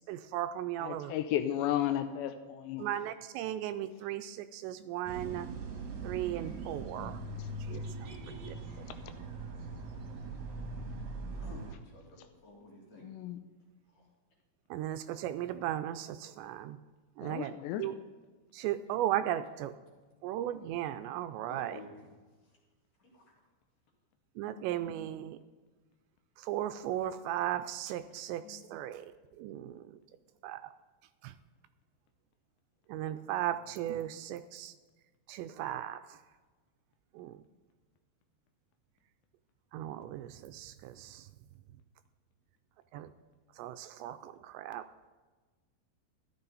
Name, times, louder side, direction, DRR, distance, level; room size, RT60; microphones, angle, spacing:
voice 1, 0.1-1.1 2.8-5.5 6.0-7.2 7.7-8.6 14.7-16.8 17.2-18.0 18.5-19.7 20.2-21.8 24.4-25.4 26.4-29.1 29.4-30.0 30.4-30.6 31.2-31.3 32.9-34.7 35.3-36.2 37.1-37.4 39.7-41.3 42.9-43.1 43.6-44.8, right 12 dB, 85° right, 11 dB, 2.7 m, -36 dB
voice 2, 0.8-2.8 6.9-7.1 13.0-13.4 17.2-17.8, left 11 dB, 80° left, 9 dB, 2.7 m, -33 dB
sound 1, 5.1-11.7, right 3 dB, 55° right, 2.2 m, -41 dB
voice 3, 8.3-9.1 11.4-11.7 11.9-13.0 21.5-21.9, left 2 dB, 45° left, -2 dB, 3.0 m, -52 dB
13.5 x 11.0 x 4.1 m, 1.3 s
omnidirectional pair, 5.2 m